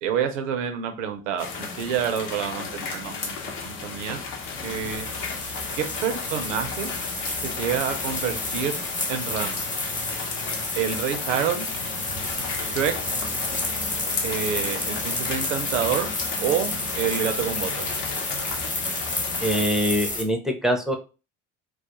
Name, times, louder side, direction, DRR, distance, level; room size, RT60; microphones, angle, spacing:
voice 1, 0.0-3.4 3.6-4.2 4.6-5.1 5.8-6.9 7.4-8.7 9.1-9.6 10.8-11.7 12.6-12.9 14.2-16.1 16.4-17.8, right 8 dB, 85° right, 7 dB, 0.5 m, -28 dB
sound 1, 1.4-19.6, left 4 dB, 65° left, 0.7 m, -34 dB
sound 2, 4.5-20.2, left 2 dB, 20° left, 0.8 m, -30 dB
voice 2, 19.4-21.0, equal, ahead, 4 dB, 0.4 m, -23 dB
2.3 x 2.1 x 2.8 m, 0.33 s
hypercardioid pair, 60°, 36 cm